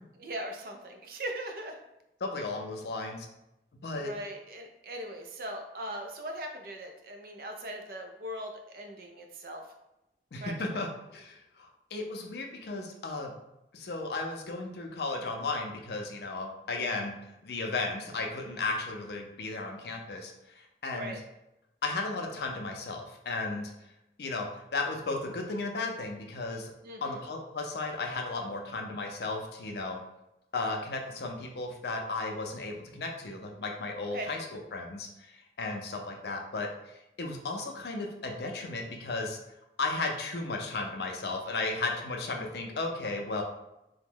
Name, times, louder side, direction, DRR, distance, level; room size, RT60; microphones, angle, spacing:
voice 1, 0.2-1.8 3.9-9.6 10.4-10.8 20.9-21.2 26.8-27.2 34.1-34.3, right 1 dB, 55° right, 4 dB, 0.4 m, -40 dB
voice 2, 2.2-3.3 3.8-4.1 10.3-10.9 11.1-13.3 13.7-17.1 17.4-20.3 20.8-21.1 21.8-23.7 24.2-24.5 24.7-26.7 27.0-30.0 30.5-35.1 35.6-36.7 37.2-39.4 39.8-43.4, left 3 dB, 70° left, 2 dB, 0.5 m, -34 dB
2.9 x 2.1 x 3.5 m, 0.89 s
head